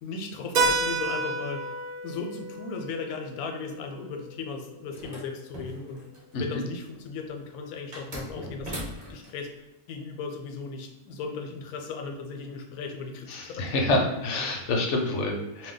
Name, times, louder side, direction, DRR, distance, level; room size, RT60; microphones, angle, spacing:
voice 1, 0.0-1.7 2.0-6.0 6.4-8.8 9.1-9.5 9.9-13.7, left 4 dB, 85° left, 4 dB, 1.1 m, -36 dB
Keyboard (musical), 0.6-5.0, right 3 dB, 80° right, 1.0 m, -31 dB
sound 1, 4.9-6.3 7.9-9.3, equal, 35° right, 1.0 m, -39 dB
voice 2, 13.3-15.7, left 2 dB, 65° left, 2 dB, 0.8 m, -27 dB
2.6 x 2.2 x 3.6 m, 1.0 s
omnidirectional pair, 1.5 m